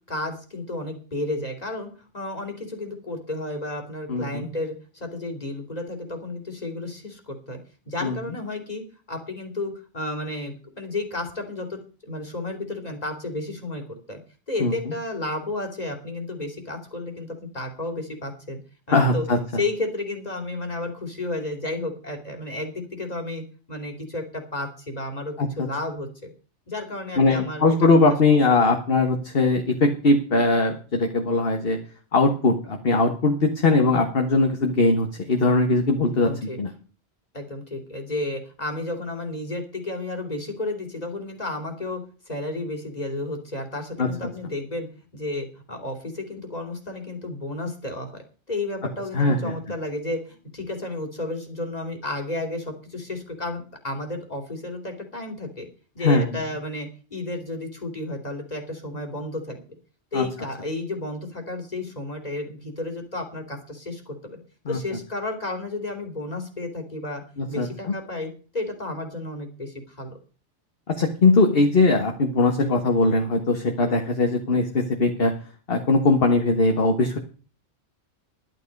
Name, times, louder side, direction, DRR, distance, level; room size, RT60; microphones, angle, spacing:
voice 1, 0.1-7.6 7.9-8.8 9.1-14.2 14.5-18.6 18.9-19.2 19.5-26.3 26.7-27.9 28.3-28.6 36.2-36.6 37.3-42.0 42.3-44.9 45.1-55.7 55.9-59.6 60.1-64.2 64.7-67.2 67.5-70.1, left 2 dB, 35° left, 4 dB, 3.1 m, -32 dB
voice 2, 4.1-4.5 8.0-8.2 14.6-14.7 18.9-19.4 25.4-25.7 27.2-31.8 32.1-36.3 36.6-36.7 44.0-44.1 49.1-49.5 56.0-56.3 60.1-60.2 64.6-64.8 67.4-67.9 70.9-75.3 75.7-77.2, left 3 dB, 50° left, 4 dB, 1.6 m, -20 dB
11.5 x 11.0 x 5.3 m, 0.38 s
omnidirectional pair, 1.2 m